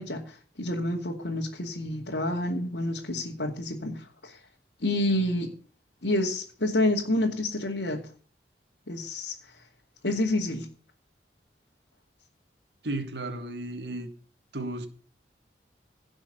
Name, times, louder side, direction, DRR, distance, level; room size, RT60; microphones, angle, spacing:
voice 1, 0.0-4.4 4.8-5.5 6.0-8.0 8.9-9.6 10.0-10.7, left 1 dB, 85° left, 2.5 m, -28 dB
voice 2, 12.8-14.1 14.5-14.9, right 2 dB, 80° right, 1.9 m, -34 dB
16.5 x 6.2 x 6.9 m
head